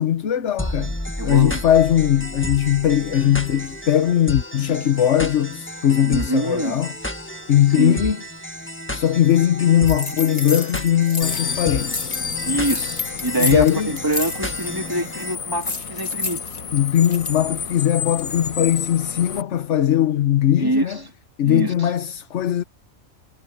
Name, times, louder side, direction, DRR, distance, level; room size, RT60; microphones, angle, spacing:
voice 1, 0.0-6.9 7.5-8.2 8.9-12.1 13.3-14.0 16.7-21.0 21.4-22.6, left 11 dB, 60° left, 1.1 m, -19 dB
sound 1, 0.6-15.3, equal, 10° left, 1.6 m, -32 dB
voice 2, 1.2-1.6 6.0-6.8 7.8-8.0 12.4-16.4 20.6-21.0 21.4-21.9, right 1 dB, 15° right, 3.3 m, -25 dB
sound 2, 9.9-11.6 11.8-14.7 15.0-15.2 15.6-17.4, left 3 dB, 30° left, 2.0 m, -30 dB
sound 3, 11.2-19.4, left 6 dB, 80° left, 1.7 m, -31 dB
omnidirectional pair, 1.4 m